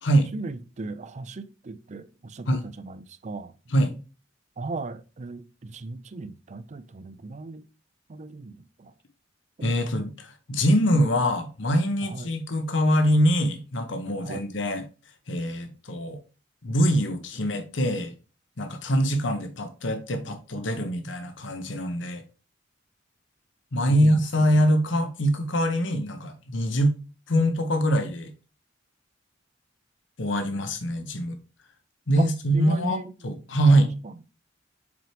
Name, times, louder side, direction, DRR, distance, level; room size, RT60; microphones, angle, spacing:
voice 1, 0.3-3.5 4.6-7.7 8.1-8.9 9.6-9.8 12.0-12.3 14.2-14.4 23.9-24.1 24.4-24.6 32.2-33.1 33.7-34.2, right 3 dB, 40° right, 0.5 m, -37 dB
voice 2, 9.6-14.8 15.3-16.2 16.6-18.1 18.6-22.2 23.7-26.9 27.3-28.3 30.2-31.4 32.1-33.9, equal, 70° left, 0.9 m, -24 dB
7.2 x 4.6 x 3.2 m
head